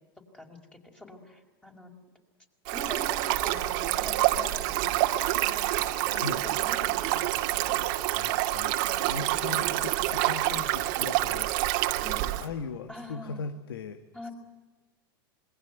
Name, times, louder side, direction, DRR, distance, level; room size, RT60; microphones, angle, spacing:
voice 1, 0.3-1.9 2.7-7.8 8.8-10.2 10.5-10.7 12.0-12.3 12.9-13.4 14.1-14.3, left 2 dB, 10° left, 2 dB, 4.9 m, -45 dB
Stream, 2.7-12.5, right 16 dB, 60° right, 2.2 m, -27 dB
voice 2, 6.1-6.4 8.1-8.8 9.1-11.5 12.4-14.3, left 4 dB, 85° left, 10 dB, 1.8 m, -38 dB
27.0 x 22.5 x 9.2 m, 1.2 s
hypercardioid pair, 120°, 12 cm